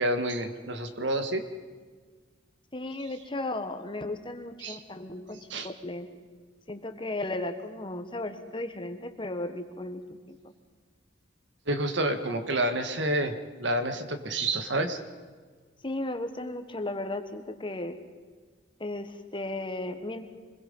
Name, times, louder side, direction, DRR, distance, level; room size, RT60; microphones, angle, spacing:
voice 1, 0.0-1.4 4.6-4.8 5.5-5.7 11.7-15.0, right 1 dB, 65° right, 8 dB, 1.8 m, -29 dB
voice 2, 2.7-6.1 6.7-10.4 15.8-18.0 18.8-20.2, left 2 dB, 25° left, 8 dB, 1.4 m, -35 dB
25.0 x 22.0 x 5.5 m, 1.5 s
head